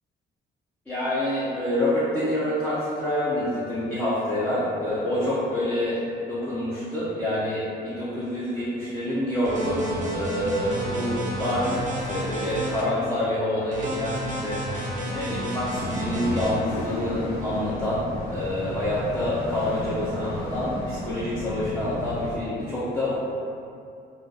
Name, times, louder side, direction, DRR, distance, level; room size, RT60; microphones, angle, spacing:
voice 1, 0.9-6.0 6.3-14.8 15.1-23.1, left 1 dB, 5° left, -13 dB, 0.5 m, -27 dB
sound 1, 9.4-12.8 13.7-16.5, equal, 40° right, 0.6 m, -31 dB
sound 2, 15.7-22.4, left 1 dB, 80° left, 0.5 m, -34 dB
2.3 x 2.2 x 2.6 m, 2.5 s
cardioid pair, 90°, 20 cm